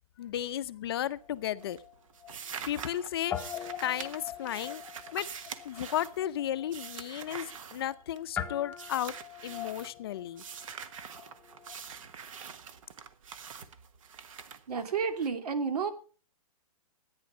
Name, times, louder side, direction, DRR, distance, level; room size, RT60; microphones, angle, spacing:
voice 1, 0.2-1.8 2.7-4.8 5.1-5.3 5.6-9.2 9.4-10.4, left 11 dB, 40° left, 0.6 m, -34 dB
sound 1, 0.9-1.4 1.6-8.4 8.7-9.9 10.4-15.3, right 7 dB, 55° right, 1.3 m, -45 dB
Guitar, 1.2-3.0 3.3-11.9, left 9 dB, 10° left, 0.9 m, -43 dB
voice 2, 14.7-15.9, right 5 dB, 75° right, 2.6 m, -31 dB
14.5 x 9.7 x 5.5 m
hypercardioid pair, 165°, 20 cm